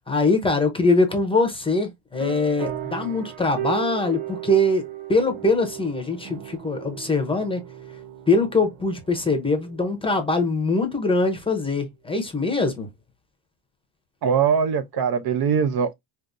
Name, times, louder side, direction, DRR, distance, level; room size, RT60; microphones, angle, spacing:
voice 1, 0.1-7.6 8.3-12.9, left 2 dB, 10° left, 0.7 m, -22 dB
sound 1, 2.2-10.3, right 10 dB, 85° right, 0.9 m, -36 dB
voice 2, 14.2-15.9, right 7 dB, 55° right, 0.6 m, -21 dB
5.0 x 2.5 x 2.5 m
cardioid pair, 180°, 46 cm